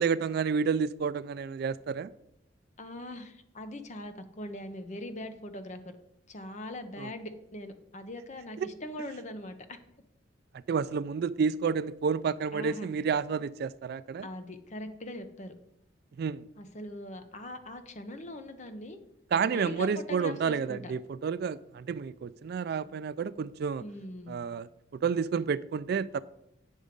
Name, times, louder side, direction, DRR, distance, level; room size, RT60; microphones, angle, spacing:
voice 1, 0.0-2.1 7.0-7.1 8.6-8.7 10.7-14.3 16.2-16.4 19.3-23.8 24.3-24.7 25.0-26.2, right 6 dB, 55° right, 0.3 m, -30 dB
voice 2, 2.8-5.8 6.3-9.8 12.5-12.9 14.2-15.5 16.6-19.0 19.5-20.9 23.8-24.4, left 1 dB, 40° left, 0.8 m, -41 dB
8.3 x 6.3 x 5.1 m
head